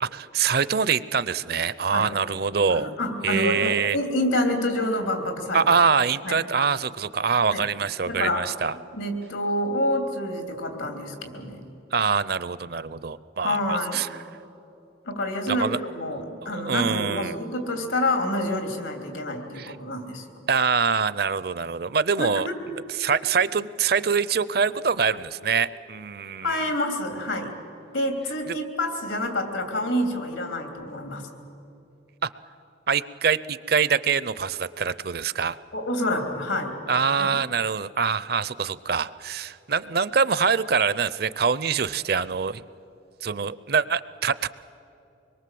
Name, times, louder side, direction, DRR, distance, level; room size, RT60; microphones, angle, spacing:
voice 1, 0.0-2.9 3.2-4.0 5.5-8.7 11.9-14.1 15.5-15.8 16.4-17.4 19.6-19.7 20.5-22.5 23.0-26.6 32.2-32.3 32.9-35.6 36.9-42.6 43.2-44.5, right 6 dB, 55° right, 17 dB, 0.6 m, -24 dB
voice 2, 2.7-5.6 6.2-6.4 7.5-7.7 8.1-8.4 8.9-11.6 13.4-14.0 15.1-20.3 22.2-22.6 26.4-27.5 27.9-31.3 35.7-36.7 37.2-37.3, left 1 dB, 85° left, 5 dB, 3.3 m, -28 dB
25.0 x 22.0 x 7.7 m, 2.8 s
head